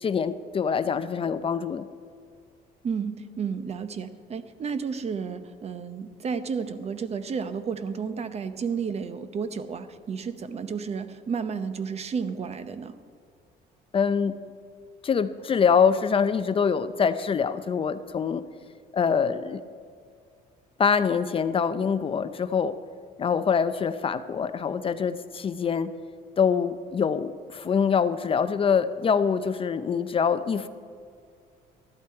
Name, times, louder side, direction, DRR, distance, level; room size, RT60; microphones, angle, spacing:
voice 1, 0.0-1.9 13.9-14.3 15.0-18.4 18.9-19.6 20.8-22.7 23.2-25.9 26.4-30.7, left 6 dB, 35° left, 12 dB, 0.5 m, -24 dB
voice 2, 2.8-12.9, right 6 dB, 40° right, 11 dB, 0.7 m, -32 dB
13.5 x 11.5 x 4.6 m, 2.1 s
cardioid pair, 110°, 17 cm